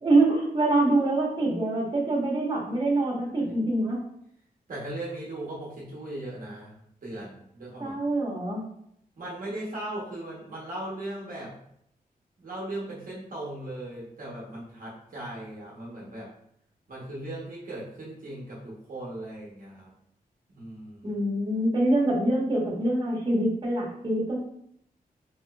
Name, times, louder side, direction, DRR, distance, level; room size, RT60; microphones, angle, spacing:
voice 1, 0.0-4.0 7.8-8.6 21.0-24.4, right 2 dB, 30° right, -5 dB, 1.2 m, -25 dB
voice 2, 4.7-8.0 9.2-11.5 12.4-16.3 16.9-19.9 20.5-21.2, right 1 dB, 60° right, -5 dB, 1.0 m, -38 dB
3.6 x 2.9 x 2.3 m, 0.73 s
wide cardioid pair, 90°, 16 cm